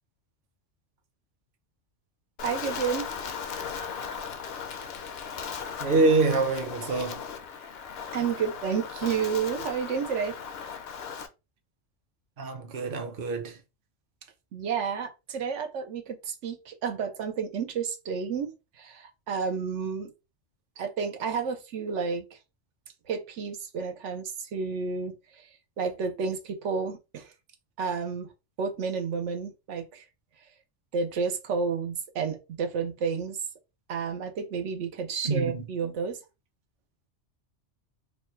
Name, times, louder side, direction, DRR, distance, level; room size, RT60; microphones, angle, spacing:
Wind, 2.4-11.3, left 6 dB, 65° left, 0.8 m, -37 dB
voice 1, 2.4-3.1 8.1-10.4 14.5-18.5 18.8-20.1 20.8-22.4 23.1-25.4 25.8-27.3 27.8-28.3 28.6-30.0 30.9-33.4 33.9-36.2, right 6 dB, 85° right, 1.0 m, -31 dB
voice 2, 5.8-7.2 12.4-13.6 35.2-35.7, right 3 dB, 50° right, 0.9 m, -25 dB
3.2 x 2.2 x 4.2 m
omnidirectional pair, 1.2 m